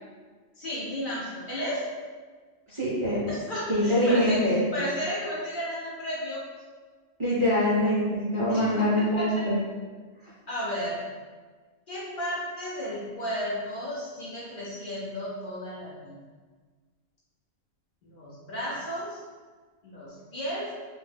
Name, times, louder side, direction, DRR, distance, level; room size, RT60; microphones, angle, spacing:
voice 1, 0.6-1.8 3.3-6.4 8.5-9.5 10.5-11.0 11.9-16.2 18.0-19.2 19.8-20.7, equal, 55° left, -7 dB, 0.7 m, -33 dB
voice 2, 2.7-3.2 3.7-4.6 7.2-9.6, equal, 50° right, -10 dB, 0.3 m, -24 dB
2.2 x 2.1 x 3.2 m, 1.4 s
omnidirectional pair, 1.2 m